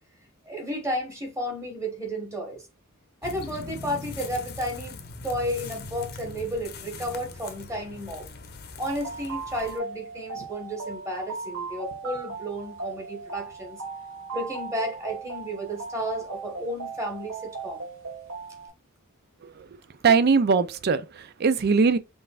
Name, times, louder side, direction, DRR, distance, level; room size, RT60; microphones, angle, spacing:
voice 1, 0.4-2.6 3.2-8.3 8.8-13.8 14.3-17.8, equal, 15° right, 1.3 m, -32 dB
sound 1, 3.2-9.8, left 3 dB, 45° left, 0.8 m, -41 dB
sound 2, 8.8-18.7, right 4 dB, 70° right, 1.6 m, -38 dB
voice 2, 20.0-22.0, right 5 dB, 45° right, 0.4 m, -21 dB
5.4 x 3.4 x 2.4 m
head